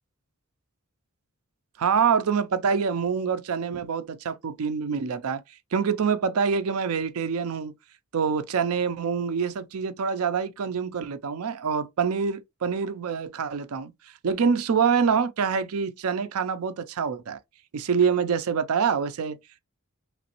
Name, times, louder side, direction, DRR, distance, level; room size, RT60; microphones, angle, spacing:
voice 1, 1.8-5.4 5.7-7.7 8.1-13.9 14.2-17.4 17.7-19.4, right 6 dB, 90° right, 0.5 m, -25 dB
3.2 x 3.0 x 2.9 m
head